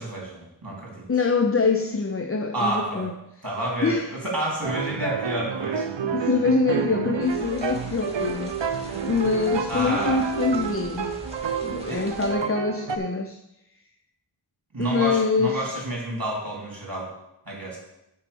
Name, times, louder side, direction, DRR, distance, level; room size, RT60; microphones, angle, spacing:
voice 1, 0.0-1.1 2.5-3.1 3.4-5.9 9.7-10.3 11.9-12.0 14.7-17.1 17.5-17.8, right 1 dB, 50° right, -3 dB, 3.6 m, -29 dB
voice 2, 1.1-3.1 3.8-4.2 6.0-8.6 8.9-11.1 11.6-13.4 14.8-15.8, left 4 dB, 30° left, 6 dB, 0.5 m, -24 dB
sound 1, 4.6-13.0, right 6 dB, 85° right, 0.7 m, -29 dB
sound 2, 7.2-12.3, equal, 15° right, 1.9 m, -42 dB
7.4 x 4.6 x 6.9 m, 0.86 s
wide cardioid pair, 45°, 43 cm